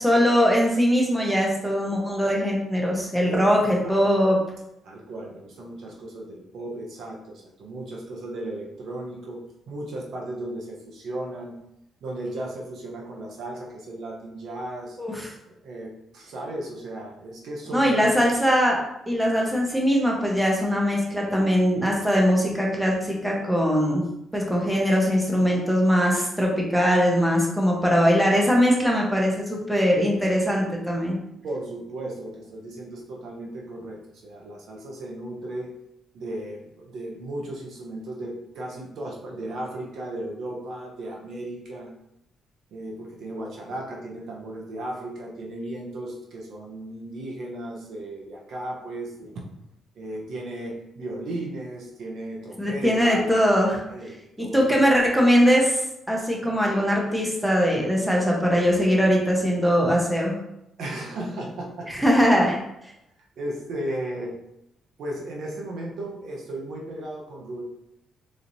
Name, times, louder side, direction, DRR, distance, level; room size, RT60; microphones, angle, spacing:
voice 1, 0.0-4.4 15.0-15.3 17.7-18.8 19.1-24.0 24.3-31.2 52.6-53.8 54.4-55.8 56.1-60.4 61.9-62.6, equal, ahead, -2 dB, 1.0 m, -21 dB
voice 2, 3.2-4.0 4.8-11.6 12.0-15.0 15.5-18.3 31.4-35.7 36.1-41.9 42.7-49.4 50.0-53.3 53.9-54.7 60.8-61.9 63.4-64.3 65.0-67.6, right 1 dB, 70° right, -1 dB, 0.8 m, -35 dB
4.0 x 3.1 x 2.7 m, 0.83 s
cardioid pair, 90°, 0 cm